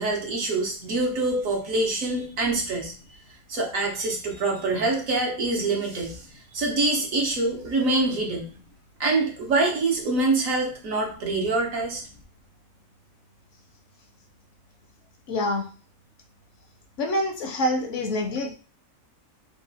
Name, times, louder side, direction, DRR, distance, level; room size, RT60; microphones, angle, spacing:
voice 1, 0.0-2.9 3.5-6.2 6.5-8.5 9.0-12.0, right 2 dB, 70° right, 0 dB, 1.5 m, -25 dB
voice 2, 15.3-15.6 17.0-18.5, left 1 dB, 65° left, 5 dB, 0.9 m, -26 dB
4.1 x 2.3 x 4.0 m, 0.39 s
omnidirectional pair, 1.5 m